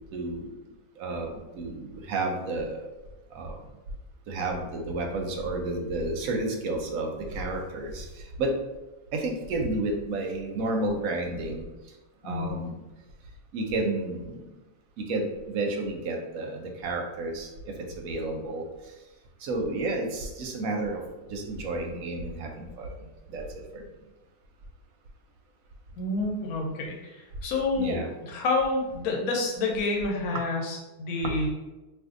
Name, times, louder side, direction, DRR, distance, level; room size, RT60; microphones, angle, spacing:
voice 1, 0.1-0.5 1.0-2.9 3.3-3.6 4.3-8.5 9.1-11.7 12.2-12.8 13.5-14.5 15.0-18.6 19.4-21.0 21.3-23.4 23.7-23.8 27.8-28.1 31.2-31.5, right 2 dB, 70° right, 2 dB, 0.9 m, -31 dB
voice 2, 12.2-12.6 26.0-28.0 28.2-31.5, left 3 dB, 70° left, 0 dB, 1.2 m, -28 dB
2.6 x 2.5 x 3.6 m, 1.1 s
omnidirectional pair, 1.7 m